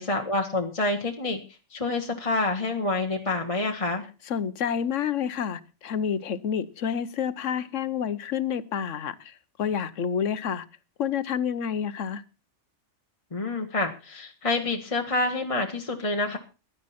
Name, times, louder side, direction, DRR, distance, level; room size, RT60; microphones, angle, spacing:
voice 1, 0.0-1.4 1.7-4.0 13.3-16.4, left 2 dB, 30° left, 1.3 m, -27 dB
voice 2, 4.3-10.7 11.0-12.2, left 8 dB, 80° left, 1.2 m, -29 dB
16.0 x 11.5 x 4.2 m
omnidirectional pair, 1.3 m